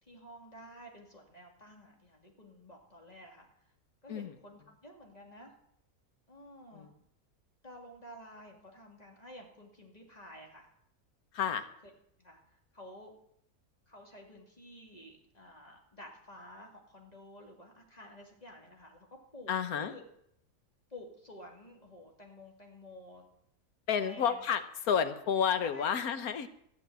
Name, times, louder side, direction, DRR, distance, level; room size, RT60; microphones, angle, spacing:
voice 1, 0.0-3.5 4.0-5.6 6.3-6.9 7.6-10.7 12.2-13.1 13.9-19.1 19.3-20.0 20.9-23.3 24.0-24.4 25.6-25.9, left 1 dB, 25° left, 1 dB, 2.4 m, -51 dB
voice 2, 11.3-11.7 19.5-19.9 23.9-26.5, left 7 dB, 75° left, 10 dB, 1.4 m, -30 dB
14.0 x 6.0 x 9.2 m, 0.72 s
omnidirectional pair, 1.6 m